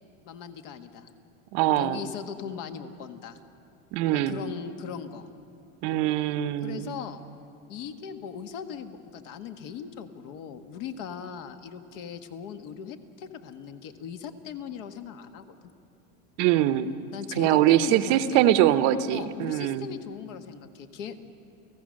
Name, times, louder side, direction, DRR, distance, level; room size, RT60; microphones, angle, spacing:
voice 1, 0.2-1.1 1.8-3.4 4.3-5.3 6.6-7.2 7.7-15.6 17.1-18.4 19.1-21.2, left 7 dB, 60° left, 8 dB, 1.5 m, -39 dB
voice 2, 1.5-2.0 3.9-4.4 5.8-6.9 16.4-16.9 17.4-19.9, right 13 dB, 45° right, 13 dB, 0.8 m, -23 dB
30.0 x 16.0 x 6.4 m, 2.5 s
supercardioid pair, 145°, 42 cm